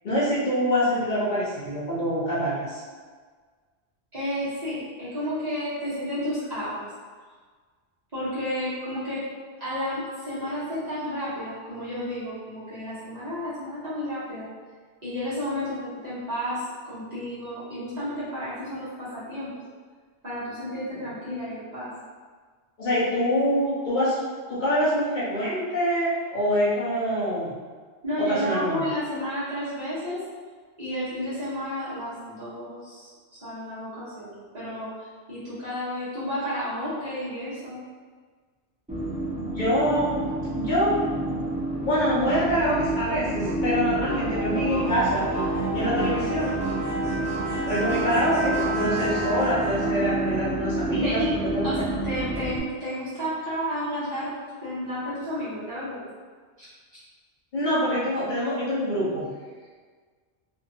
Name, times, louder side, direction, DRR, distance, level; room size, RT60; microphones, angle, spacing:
voice 1, 0.0-2.8 22.8-24.2 24.5-27.5 28.2-28.8 39.5-40.1 40.5-40.9 41.8-45.2 45.7-46.6 47.7-51.2 51.5-51.7 57.5-59.3, equal, 55° left, -8 dB, 0.6 m, -25 dB
voice 2, 4.1-6.9 8.1-9.2 9.6-14.4 15.0-19.5 20.2-21.9 28.0-30.2 30.8-33.1 33.4-34.9 35.3-37.8 50.9-51.3 51.6-54.3 54.6-56.0 56.6-56.7, equal, 40° right, -13 dB, 0.9 m, -31 dB
sound 1, 38.9-52.6, right 2 dB, 10° right, 0.4 m, -28 dB
2.6 x 2.2 x 2.6 m, 1.5 s
omnidirectional pair, 1.2 m